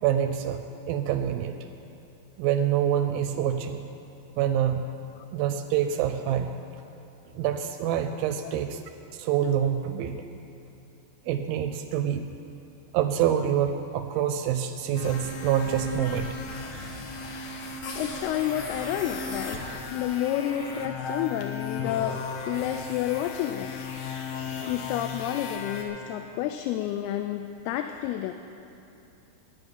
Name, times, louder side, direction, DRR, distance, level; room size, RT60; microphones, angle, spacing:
voice 1, 0.0-1.6 2.4-3.8 4.4-4.9 5.3-6.5 7.3-8.8 9.1-10.2 11.3-12.2 12.9-16.3, right 9 dB, 80° right, 8 dB, 2.1 m, -26 dB
sound 1, 14.9-25.8, left 3 dB, 65° left, 1.8 m, -35 dB
voice 2, 18.0-19.6 19.9-22.2 22.5-23.7 24.7-28.3, left 11 dB, 85° left, 7 dB, 2.4 m, -30 dB
14.5 x 5.8 x 9.6 m, 2.8 s
omnidirectional pair, 4.6 m